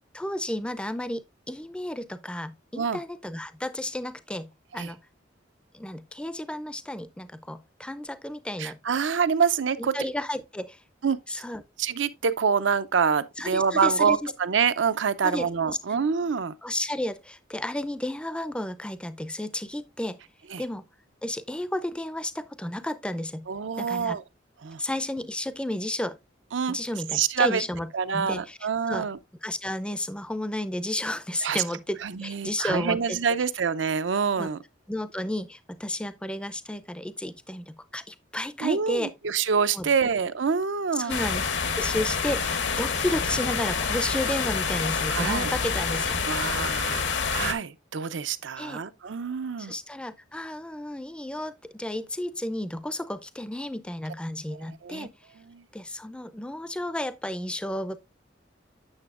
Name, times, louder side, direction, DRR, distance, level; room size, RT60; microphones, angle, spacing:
voice 1, 0.1-4.5 4.7-5.0 5.7-8.8 9.8-10.8 11.3-11.6 13.4-14.3 15.2-16.0 16.6-20.2 20.6-20.8 21.2-23.5 23.8-24.2 24.8-26.2 26.7-28.6 28.9-29.1 29.4-33.2 34.4-34.5 34.9-39.1 39.7-39.9 40.9-41.5 41.8-46.2 48.6-48.8 49.6-55.1 55.7-58.0, left 1 dB, 5° left, 0.4 m, -32 dB
voice 2, 8.6-9.9 11.0-11.2 11.8-16.5 20.5-20.6 23.5-24.2 24.6-24.8 26.5-26.8 27.1-27.6 27.9-29.2 31.4-31.6 32.0-34.6 38.6-41.2 45.1-45.5 46.3-47.0 47.3-49.7 54.5-55.1 55.4-55.6, right 6 dB, 80° right, 0.6 m, -26 dB
sound 1, 41.1-47.5, left 5 dB, 70° left, 1.0 m, -27 dB
8.8 x 6.7 x 2.4 m
head